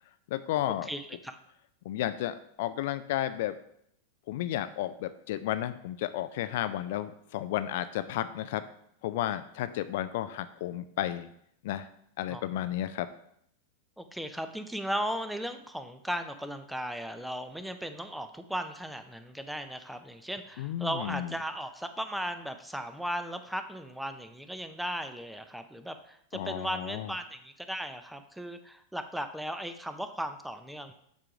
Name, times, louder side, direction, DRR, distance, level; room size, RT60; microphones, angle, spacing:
voice 1, 0.3-0.9 1.9-3.6 4.3-8.6 9.0-11.3 11.6-11.9 12.2-13.1 20.6-21.3 26.3-27.1, left 13 dB, 50° left, 12 dB, 0.3 m, -32 dB
voice 2, 0.9-1.4 12.3-12.4 14.0-30.9, equal, ahead, 9 dB, 0.5 m, -36 dB
7.4 x 3.7 x 4.9 m, 0.72 s
figure-of-eight pair, 90°, 0 cm